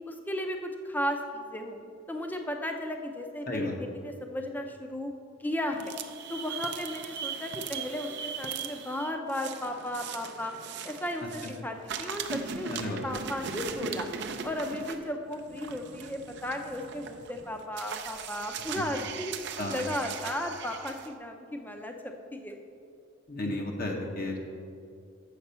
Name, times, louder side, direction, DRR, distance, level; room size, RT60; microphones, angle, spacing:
voice 1, 0.1-1.8 2.1-5.1 5.4-5.9 6.3-10.5 10.8-14.1 14.4-19.3 19.7-21.9 22.3-22.6, left 1 dB, 10° left, 4 dB, 0.5 m, -35 dB
voice 2, 3.5-3.8 11.4-11.5 12.7-13.0 19.6-19.8 23.3-24.4, left 2 dB, 45° left, 0 dB, 0.8 m, -33 dB
sound 1, 5.7-11.6 11.9-21.1, right 6 dB, 55° right, 0.5 m, -39 dB
7.0 x 6.7 x 5.6 m, 2.4 s
head